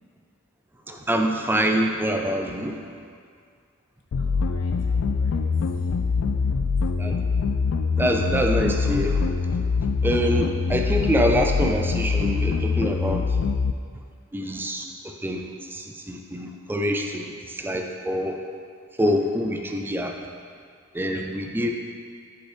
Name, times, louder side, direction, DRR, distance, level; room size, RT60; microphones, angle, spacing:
voice 1, 0.9-2.8 7.0-7.2 8.0-9.3 10.0-13.2 14.3-18.4 19.0-20.1 20.9-21.7, equal, 10° right, 3 dB, 0.3 m, -25 dB
sound 1, 4.1-13.7, left 5 dB, 70° left, 0.3 m, -24 dB
voice 2, 4.2-5.4 5.7-6.5 21.4-21.7, left 1 dB, 90° left, 1 dB, 0.8 m, -49 dB
6.1 x 5.2 x 3.4 m, 2.1 s
head